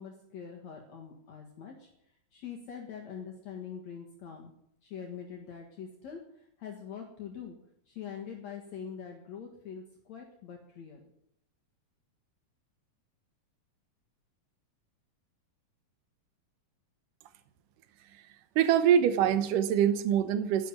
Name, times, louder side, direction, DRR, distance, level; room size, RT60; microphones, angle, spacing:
voice 1, 0.0-1.9 2.3-4.5 4.8-7.6 7.9-11.1, left 7 dB, 60° left, 1 dB, 2.7 m, -44 dB
voice 2, 18.6-20.7, right 9 dB, 80° right, 11 dB, 2.6 m, -24 dB
11.0 x 10.5 x 9.8 m, 0.77 s
omnidirectional pair, 3.8 m